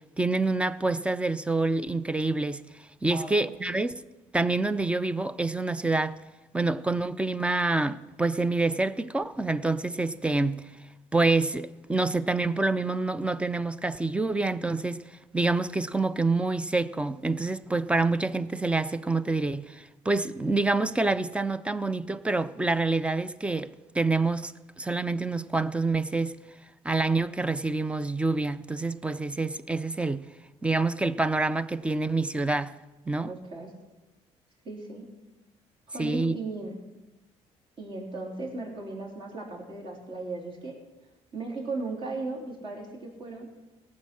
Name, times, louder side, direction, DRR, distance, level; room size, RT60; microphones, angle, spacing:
voice 1, 0.0-2.6 3.0-4.0 4.3-6.2 6.5-10.6 11.1-15.0 15.3-26.3 26.8-30.2 30.6-32.7 33.1-33.3 36.0-36.3, right 3 dB, 10° right, 0.5 m, -27 dB
voice 2, 33.2-33.7 34.6-35.1 35.9-36.7 37.8-40.7 41.3-43.5, right 3 dB, 45° right, 3.6 m, -36 dB
17.5 x 7.3 x 6.2 m
cardioid pair, 120°, 12 cm